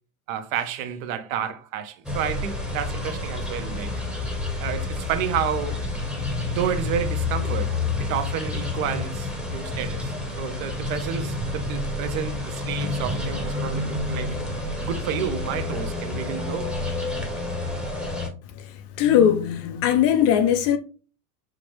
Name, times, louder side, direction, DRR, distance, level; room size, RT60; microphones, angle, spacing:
voice 1, 0.3-3.9 4.6-5.8 6.5-14.4 14.8-16.7, right 8 dB, 65° right, 0.8 m, -30 dB
sound 1, 2.1-18.3, left 2 dB, ahead, 0.8 m, -29 dB
voice 2, 19.0-20.8, left 9 dB, 35° left, 0.4 m, -19 dB
4.8 x 2.1 x 3.1 m
hypercardioid pair, 105°, 45 cm